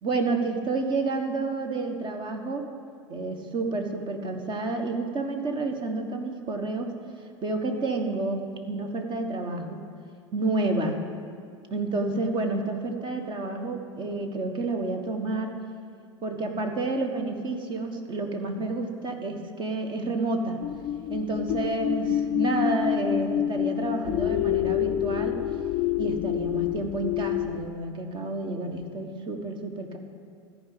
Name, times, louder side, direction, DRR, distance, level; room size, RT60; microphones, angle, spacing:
voice 1, 0.0-2.7 3.1-6.9 7.4-9.8 10.3-11.0 11.7-15.6 16.2-20.6 21.1-25.4 26.0-30.0, right 2 dB, 30° right, 5 dB, 1.5 m, -29 dB
sound 1, 20.6-27.7, left 12 dB, 35° left, 0.6 m, -27 dB
14.0 x 5.2 x 8.5 m, 2.4 s
hypercardioid pair, 95°, 15 cm